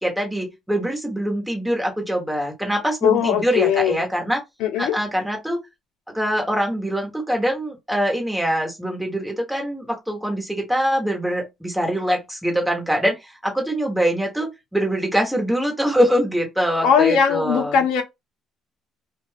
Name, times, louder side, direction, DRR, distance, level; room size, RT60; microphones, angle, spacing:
voice 1, 0.0-4.4 4.8-5.6 6.1-17.8, equal, 5° right, 1.2 m, -23 dB
voice 2, 3.0-4.0 4.6-4.9 16.8-18.0, left 8 dB, 75° left, 0.7 m, -19 dB
2.4 x 2.3 x 3.4 m
cardioid pair, 95°, 0 cm